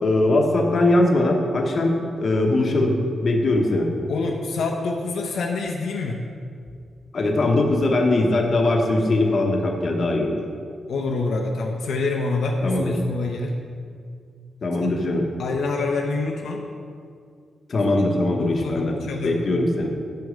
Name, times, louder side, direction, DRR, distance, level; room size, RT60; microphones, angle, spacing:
voice 1, 0.0-2.9 3.2-3.9 7.1-10.4 12.6-12.9 14.6-15.2 17.7-19.0 19.2-19.9, left 2 dB, 45° left, 1 dB, 1.0 m, -21 dB
voice 2, 4.1-6.2 10.9-13.5 14.8-14.9 15.4-16.6 17.9-18.1 18.4-19.4, left 3 dB, 80° left, 0 dB, 0.7 m, -26 dB
6.8 x 6.5 x 5.1 m, 2.2 s
wide cardioid pair, 130°, 0 cm